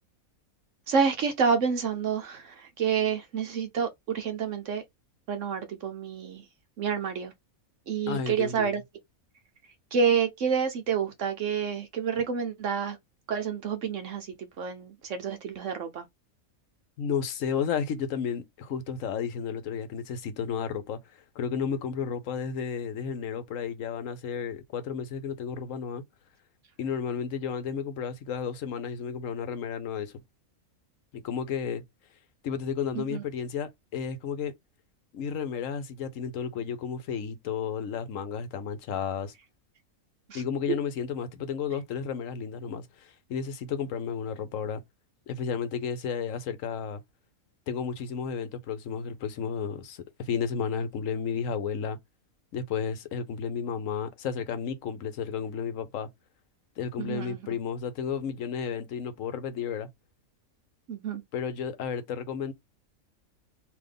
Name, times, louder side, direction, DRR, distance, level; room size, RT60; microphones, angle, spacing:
voice 1, 0.9-4.8 5.3-6.4 6.8-7.3 7.9-8.8 9.9-13.0 13.3-16.1 32.9-33.2 40.3-40.4 40.7-40.8 57.0-57.4 60.9-61.2, right 6 dB, 65° right, 1.0 m, -28 dB
voice 2, 8.1-8.7 17.0-21.0 21.3-26.0 26.8-30.1 31.1-31.8 32.4-34.5 35.1-39.3 40.3-44.8 45.3-47.0 47.7-52.0 52.5-56.1 56.8-59.9 61.3-62.5, left 7 dB, 65° left, 1.0 m, -32 dB
3.4 x 2.9 x 3.8 m
omnidirectional pair, 1.5 m